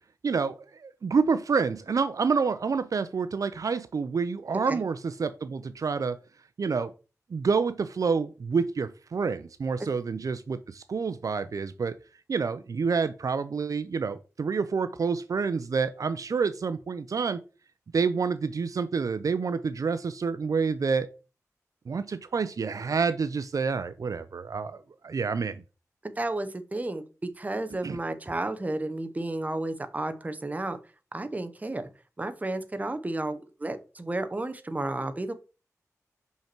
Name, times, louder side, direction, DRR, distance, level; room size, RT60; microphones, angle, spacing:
voice 1, 0.2-0.5 0.8-6.2 6.6-6.9 7.3-12.0 12.3-17.4 17.9-21.1 21.9-25.6 27.8-28.0, right 5 dB, 75° right, 12 dB, 0.5 m, -28 dB
voice 2, 26.0-30.8 31.1-31.9 32.2-35.3, right 2 dB, 25° right, 9 dB, 0.9 m, -32 dB
5.8 x 5.6 x 4.5 m, 0.33 s
wide cardioid pair, 100°, 6 cm